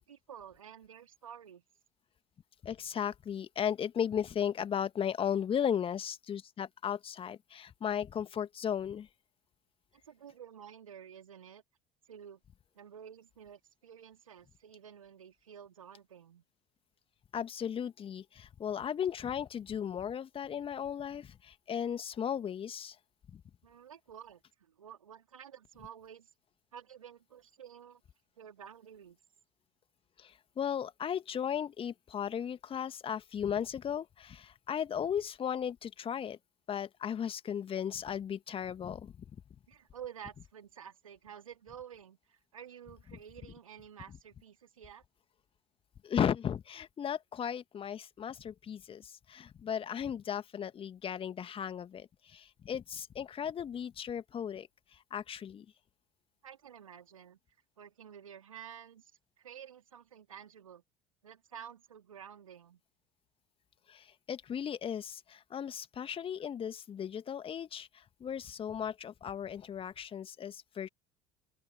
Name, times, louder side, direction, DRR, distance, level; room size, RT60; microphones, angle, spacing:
voice 1, 0.0-1.6 9.9-11.6 12.1-12.4 12.7-16.4 23.6-26.3 26.7-28.0 28.4-29.2 39.7-45.0 56.4-57.4 57.8-59.1 59.4-60.8 61.2-62.8, right 9 dB, 75° right, 3.1 m, -51 dB
voice 2, 2.6-9.1 17.3-23.0 23.3-23.4 30.2-36.4 36.7-39.1 46.0-54.7 55.1-55.7 63.9-70.9, left 8 dB, 30° left, 1.9 m, -36 dB
open air
figure-of-eight pair, 65°, 17 cm